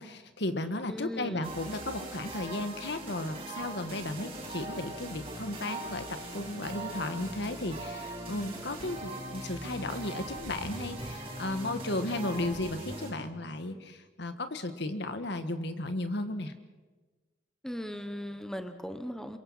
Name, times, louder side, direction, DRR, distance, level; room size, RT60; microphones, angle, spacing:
voice 1, 0.0-16.5, left 2 dB, 65° left, 9 dB, 1.7 m, -35 dB
voice 2, 0.9-1.6 17.6-19.4, equal, 5° left, 8 dB, 1.2 m, -38 dB
sound 1, 1.4-13.1, right 1 dB, 30° right, 7.1 m, -40 dB
27.0 x 23.0 x 5.9 m, 1.3 s
head